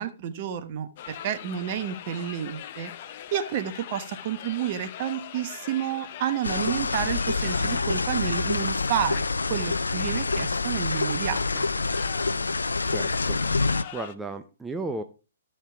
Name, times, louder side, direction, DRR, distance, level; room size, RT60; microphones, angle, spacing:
voice 1, 0.0-2.9 3.3-9.2 9.5-11.7, right 10 dB, 45° right, 9 dB, 1.1 m, -30 dB
sound 1, 1.0-14.1, left 11 dB, 45° left, 0.7 m, -42 dB
sound 2, 6.4-13.8, left 3 dB, 85° left, 0.5 m, -27 dB
voice 2, 12.9-13.6 13.9-15.0, right 2 dB, 10° right, 6 dB, 0.6 m, -35 dB
14.0 x 5.6 x 3.5 m, 0.32 s
figure-of-eight pair, 125°, 0 cm